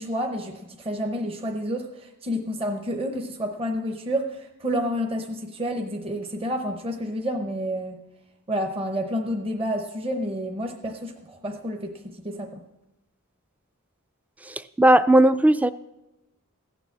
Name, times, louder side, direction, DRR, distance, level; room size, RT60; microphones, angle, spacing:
voice 1, 0.0-8.0 8.5-12.6, equal, 25° right, 4 dB, 0.8 m, -29 dB
voice 2, 14.5-15.7, right 1 dB, 5° right, 14 dB, 0.3 m, -17 dB
16.0 x 6.9 x 7.4 m, 0.97 s
head